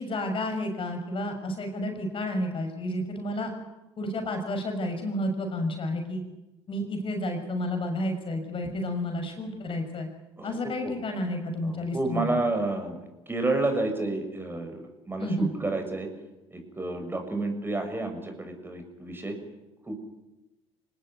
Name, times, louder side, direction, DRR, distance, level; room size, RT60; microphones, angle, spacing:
voice 1, 0.0-3.5 4.0-6.2 6.7-10.1 10.4-12.4 15.2-15.5, left 1 dB, 40° left, 5 dB, 6.4 m, -31 dB
voice 2, 11.6-13.0 13.3-16.1 16.5-19.4 19.8-20.0, right 2 dB, 15° right, 5 dB, 6.7 m, -30 dB
26.5 x 19.0 x 9.4 m, 1.0 s
hypercardioid pair, 60°, 14 cm